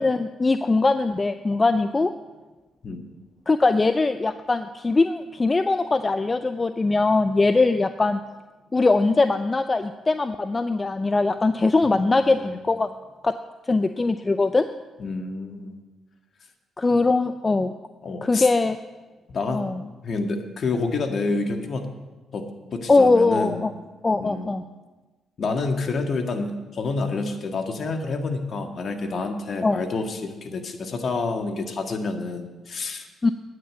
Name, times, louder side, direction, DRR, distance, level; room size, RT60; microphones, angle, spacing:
voice 1, 0.0-2.1 3.5-8.2 8.7-12.9 13.2-13.3 13.7-14.7 16.8-17.7 18.2-18.8 19.5-19.8 22.9-23.7 24.0-24.6 29.6-29.8 33.2-33.3, left 3 dB, 30° left, 10 dB, 0.5 m, -21 dB
voice 2, 11.8-12.6 15.0-15.8 18.0-18.5 19.3-19.6 20.0-21.9 22.3-22.4 22.7-23.6 24.2-24.6 25.4-33.1, left 3 dB, 55° left, 5 dB, 1.6 m, -28 dB
9.5 x 6.7 x 9.0 m, 1.2 s
supercardioid pair, 55°, 0 cm